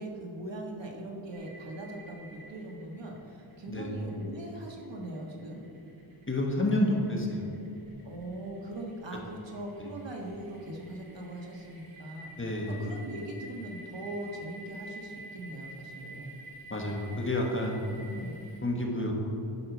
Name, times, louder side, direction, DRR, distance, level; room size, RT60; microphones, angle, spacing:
voice 1, 0.0-5.6 8.0-16.3 18.0-18.4, right 1 dB, 60° right, 0 dB, 1.5 m, -41 dB
sound 1, 1.3-18.6, right 1 dB, 80° right, 2.4 m, -50 dB
voice 2, 3.7-4.0 6.3-7.5 12.4-12.7 16.7-18.0 18.6-19.1, left 1 dB, 25° left, 0 dB, 1.5 m, -29 dB
9.8 x 5.7 x 5.9 m, 2.7 s
wide cardioid pair, 85°, 48 cm